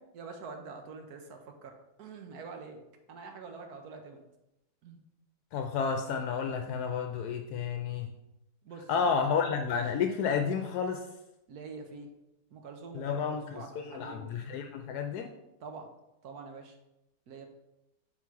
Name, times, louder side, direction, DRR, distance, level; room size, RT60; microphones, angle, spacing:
voice 1, 0.1-2.8 3.1-4.2 4.8-5.0 8.6-9.8 11.5-12.1 12.5-14.3 15.6-15.9 16.2-16.7 17.3-17.5, right 4 dB, 75° right, 4 dB, 1.3 m, -45 dB
voice 2, 5.5-8.1 8.9-11.0 12.9-15.3, left 6 dB, 80° left, 5 dB, 1.1 m, -31 dB
6.0 x 4.1 x 4.7 m, 0.90 s
omnidirectional pair, 1.7 m